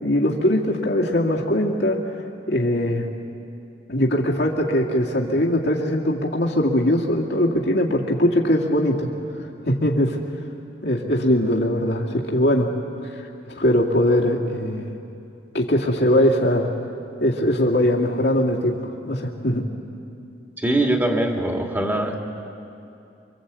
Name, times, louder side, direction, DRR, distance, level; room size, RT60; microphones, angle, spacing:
voice 1, 0.0-2.1 2.5-3.1 3.9-9.1 9.6-10.2 10.8-12.7 13.5-15.0 15.5-16.7 17.2-19.7, left 1 dB, 75° left, -2 dB, 2.3 m, -21 dB
voice 2, 20.6-22.2, right 1 dB, 10° right, 1 dB, 2.4 m, -22 dB
25.5 x 25.5 x 8.4 m, 2.7 s
head